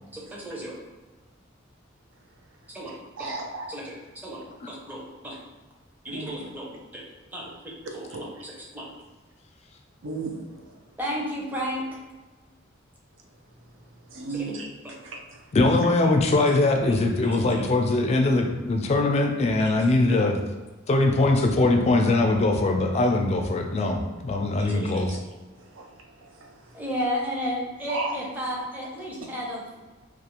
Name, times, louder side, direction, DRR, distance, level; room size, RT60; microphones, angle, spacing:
voice 1, 0.1-0.8 2.7-3.3 3.7-5.4 6.0-7.0 7.3-8.9 11.0-11.9 14.3-14.9 15.6-15.8 16.4-17.7 19.6-19.7 20.1-20.2 24.6-25.1 26.7-29.8, equal, 10° right, -4 dB, 0.6 m, -34 dB
voice 2, 3.2-3.7 6.1-6.3 8.1-8.2 10.0-10.8 14.1-14.7 15.0-15.2 25.1-25.2 25.6-26.8 27.9-28.1, right 3 dB, 80° right, 1 dB, 0.5 m, -35 dB
voice 3, 15.5-20.4 20.9-25.1, left 2 dB, 35° left, 3 dB, 0.3 m, -22 dB
2.4 x 2.4 x 2.9 m, 1.2 s
head